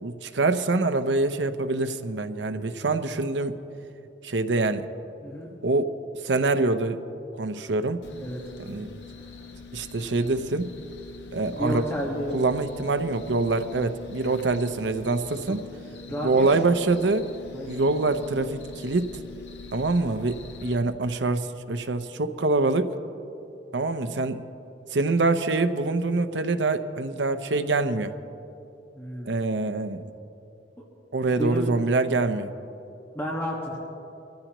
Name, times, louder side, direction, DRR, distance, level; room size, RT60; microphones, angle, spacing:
voice 1, 0.0-3.6 4.2-4.9 5.6-5.9 6.2-7.0 7.4-8.0 8.7-8.9 9.7-10.7 11.3-11.8 12.3-15.6 16.2-17.3 17.7-19.1 19.7-22.9 23.7-24.4 24.9-28.1 29.3-30.0 31.1-32.5, right 3 dB, 85° right, 9 dB, 0.7 m, -25 dB
sound 1, 8.0-20.8, left 4 dB, 70° left, 1.3 m, -44 dB
voice 2, 11.5-12.4 16.1-16.5 17.5-17.8 29.0-29.3 31.4-31.7 33.1-33.8, equal, 15° left, -3 dB, 1.5 m, -31 dB
24.0 x 14.5 x 3.0 m, 2.8 s
head